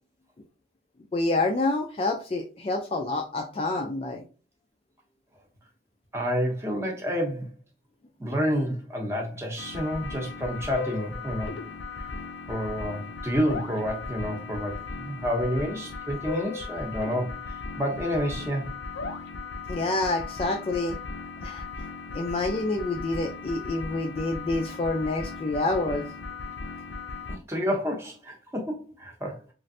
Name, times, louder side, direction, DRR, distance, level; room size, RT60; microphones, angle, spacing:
voice 1, 1.1-4.2 19.7-21.0 21.4-21.6 22.1-26.0, left 2 dB, 30° left, 4 dB, 0.3 m, -27 dB
voice 2, 6.1-7.5 8.2-11.5 11.9-12.1 12.5-18.7 27.3-29.5, equal, 15° right, 0 dB, 0.7 m, -29 dB
sound 1, 9.6-27.4, left 4 dB, 85° left, 0.5 m, -37 dB
3.1 x 2.4 x 2.6 m, 0.36 s
head